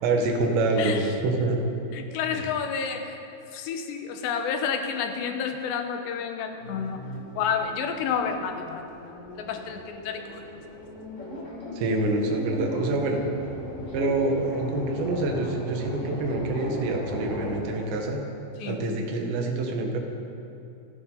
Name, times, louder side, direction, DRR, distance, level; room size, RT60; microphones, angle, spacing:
voice 1, 0.0-1.6 2.3-2.5 11.8-13.2 13.9-18.2 18.7-20.0, right 2 dB, 75° right, 2 dB, 3.7 m, -26 dB
voice 2, 1.9-3.1 3.5-7.0 7.4-10.4 18.6-18.8, left 6 dB, 80° left, 5 dB, 3.2 m, -30 dB
sound 1, 6.6-18.1, equal, 45° left, 1.0 m, -37 dB
28.0 x 11.0 x 3.9 m, 2.7 s
omnidirectional pair, 5.1 m